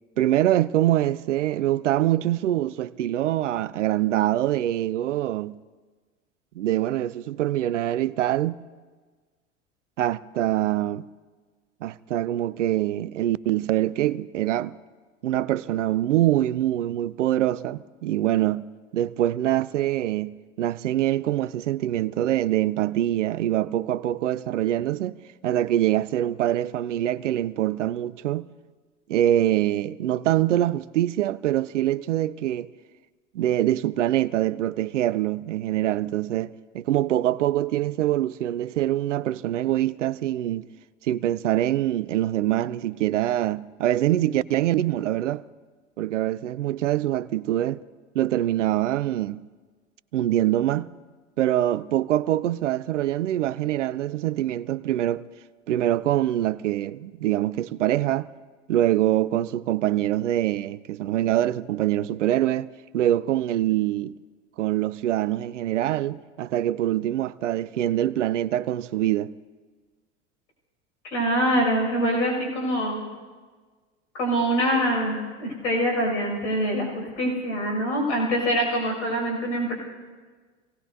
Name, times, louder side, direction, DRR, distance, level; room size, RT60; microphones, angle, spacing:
voice 1, 0.2-5.5 6.6-8.6 10.0-11.1 11.8-14.7 15.2-18.7 18.9-25.2 25.4-28.5 29.1-32.7 33.3-40.7 41.0-45.4 46.0-47.8 48.1-49.4 50.1-50.9 51.4-55.3 55.7-58.3 58.7-64.1 64.6-69.3, right 13 dB, 80° right, 0.5 m, -24 dB
voice 2, 71.0-73.0 74.1-79.8, equal, 75° left, 6.5 m, -24 dB
26.0 x 18.0 x 2.8 m
hypercardioid pair, 80°, 36 cm